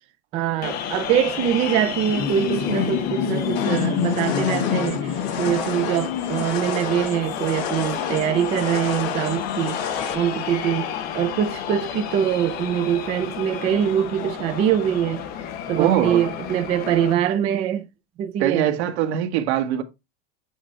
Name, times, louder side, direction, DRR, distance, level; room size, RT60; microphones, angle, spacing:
voice 1, 0.3-9.9 10.1-15.2 15.7-17.9 18.2-18.7, right 10 dB, 20° right, 0.4 m, -23 dB
sound 1, 0.6-17.1, left 9 dB, 30° left, 0.7 m, -29 dB
sound 2, 3.6-10.1, left 6 dB, 55° left, 1.5 m, -31 dB
voice 2, 15.8-16.3 18.4-19.8, right 11 dB, 70° right, 1.8 m, -22 dB
8.2 x 3.6 x 4.5 m
supercardioid pair, 175°, 34 cm